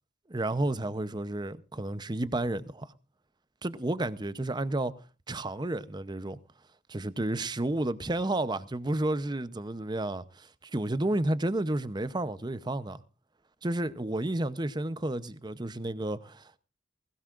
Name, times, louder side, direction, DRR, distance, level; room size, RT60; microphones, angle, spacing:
voice 1, 0.3-2.9 3.6-4.9 5.3-6.4 6.9-13.0 13.6-16.6, right 1 dB, 20° right, 0.7 m, -31 dB
20.5 x 16.5 x 2.5 m
head